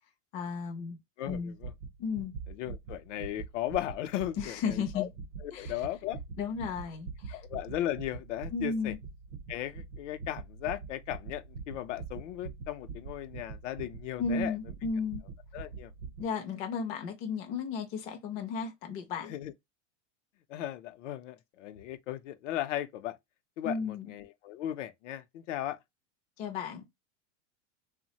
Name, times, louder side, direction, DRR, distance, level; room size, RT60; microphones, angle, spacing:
voice 1, 0.3-1.0 1.3-1.5 2.0-2.3 4.4-5.1 5.5-5.7 6.4-7.4 8.5-9.0 14.2-15.2 16.2-19.3 23.6-24.1 26.4-26.8, left 5 dB, 25° left, 0.4 m, -34 dB
voice 2, 1.2-1.7 2.5-5.1 5.4-6.2 7.3-8.9 9.5-14.6 15.5-15.9 19.2-19.5 20.5-23.2 23.6-25.8, left 13 dB, 75° left, 0.5 m, -36 dB
sound 1, 1.2-16.3, right 5 dB, 65° right, 0.8 m, -44 dB
3.1 x 2.1 x 2.7 m
supercardioid pair, 160°, 37 cm